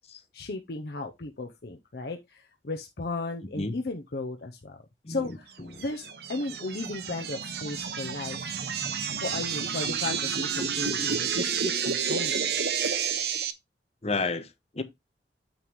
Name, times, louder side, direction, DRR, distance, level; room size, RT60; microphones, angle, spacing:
voice 1, 0.3-4.8 5.1-5.5 5.8-8.4 9.2-12.5, left 3 dB, 60° left, 0.7 m, -35 dB
voice 2, 5.0-5.4 5.7-5.8 14.0-14.8, left 3 dB, 35° left, 0.9 m, -31 dB
sound 1, 5.8-13.5, right 7 dB, 60° right, 0.9 m, -30 dB
9.0 x 3.1 x 5.4 m
head